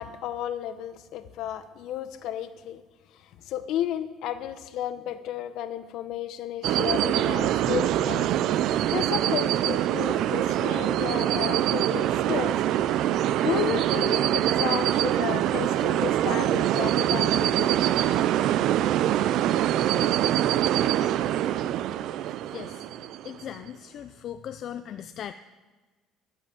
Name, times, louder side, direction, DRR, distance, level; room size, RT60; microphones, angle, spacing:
voice 1, 0.0-2.8 3.4-12.6 13.4-17.8 19.5-19.6, left 11 dB, 70° left, 11 dB, 0.8 m, -33 dB
sound 1, 6.6-23.4, right 12 dB, 65° right, 0.4 m, -24 dB
voice 2, 22.5-22.8 23.2-25.3, left 10 dB, 55° left, 9 dB, 0.4 m, -38 dB
13.5 x 5.5 x 7.6 m, 1.3 s
cardioid pair, 120°, 0 cm